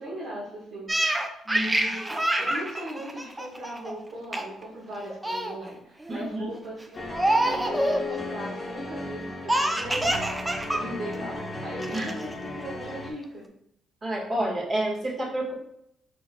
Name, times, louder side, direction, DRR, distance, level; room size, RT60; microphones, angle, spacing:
voice 1, 0.0-7.1 7.4-10.4 10.7-13.5, equal, 75° right, -7 dB, 1.4 m, -39 dB
Laughter, 0.9-3.9 4.3-4.6 4.9-5.6 6.0-6.4 7.1-8.1 9.5-10.8 11.1-11.2 11.8-12.3, right 1 dB, 15° right, 0.5 m, -26 dB
voice 2, 6.1-6.5 11.9-12.1 14.0-15.5, right 1 dB, 40° right, -3 dB, 1.5 m, -29 dB
sound 1, 6.9-13.1, left 2 dB, 35° left, 0.8 m, -36 dB
4.9 x 4.5 x 2.2 m, 0.75 s
cardioid pair, 90°, 0 cm